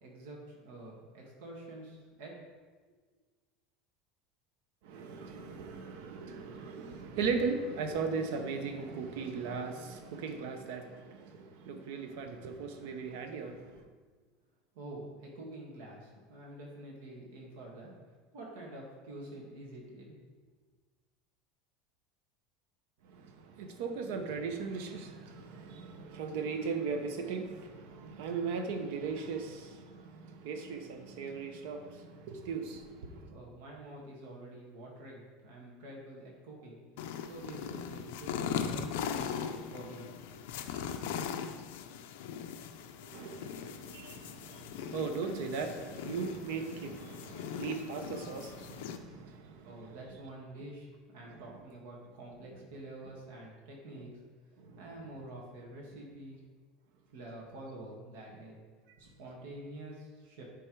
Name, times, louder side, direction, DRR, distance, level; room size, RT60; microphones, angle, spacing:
voice 1, 0.0-2.4 14.7-17.9 18.3-20.2 33.3-36.8 37.2-38.3 38.6-40.1 49.6-54.1 54.8-56.4 57.1-58.6 59.0-60.4, right 1 dB, 85° right, -2 dB, 1.9 m, -47 dB
voice 2, 4.8-13.8 23.1-33.3 43.1-49.8 54.6-54.8, right 5 dB, 70° right, 6 dB, 0.8 m, -38 dB
sound 1, 37.0-49.0, left 7 dB, 80° left, 0.5 m, -40 dB
9.8 x 3.5 x 4.6 m, 1.4 s
cardioid pair, 175°, 0 cm